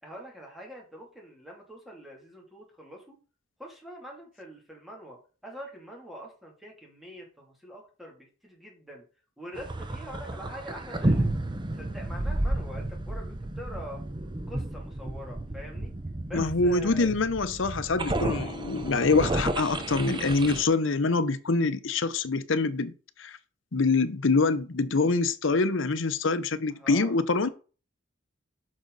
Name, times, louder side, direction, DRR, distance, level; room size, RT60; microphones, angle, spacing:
voice 1, 0.0-3.2 3.6-9.0 9.4-11.3 11.7-14.0 14.5-15.9 16.2-17.1 26.7-27.2 27.4-27.5, equal, ahead, 2.7 m, -44 dB
sound 1, 9.6-20.7, right 1 dB, 20° right, 0.7 m, -32 dB
voice 2, 16.3-22.9 23.2-23.4 23.7-27.5, left 3 dB, 70° left, 0.8 m, -25 dB
8.6 x 6.3 x 4.0 m
head